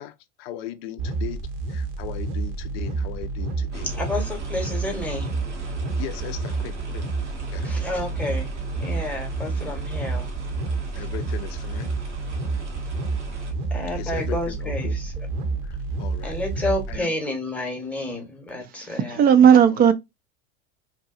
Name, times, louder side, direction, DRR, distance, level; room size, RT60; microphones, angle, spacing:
voice 1, 0.0-3.9 4.5-4.6 6.0-7.1 7.5-7.7 9.6-9.8 10.9-11.9 14.0-15.0 15.6-17.1 19.7-19.9, left 13 dB, 60° left, 0.4 m, -38 dB
sound 1, 1.0-17.0, right 3 dB, 55° right, 0.8 m, -29 dB
sound 2, 3.7-13.5, right 3 dB, 85° right, 0.9 m, -43 dB
voice 2, 3.8-5.3 7.6-8.5 8.8-10.3 11.0-11.1 13.7-15.1 16.2-19.2, left 1 dB, 5° left, 0.9 m, -30 dB
voice 3, 18.8-19.9, right 8 dB, 25° right, 0.4 m, -15 dB
2.8 x 2.2 x 2.3 m
hypercardioid pair, 85°, 35 cm